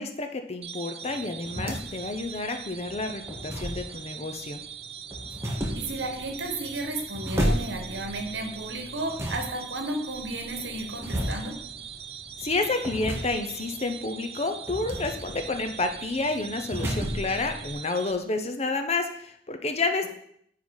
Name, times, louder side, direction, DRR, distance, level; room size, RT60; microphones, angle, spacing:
voice 1, 0.0-4.6 12.4-20.1, left 3 dB, 35° left, 7 dB, 0.7 m, -30 dB
sound 1, 0.6-18.1, right 8 dB, 35° right, 0.6 m, -42 dB
sound 2, 1.0-17.7, equal, 15° right, 1.3 m, -35 dB
voice 2, 5.7-11.5, right 2 dB, 70° right, 4 dB, 1.4 m, -33 dB
9.5 x 3.9 x 4.8 m, 0.68 s
head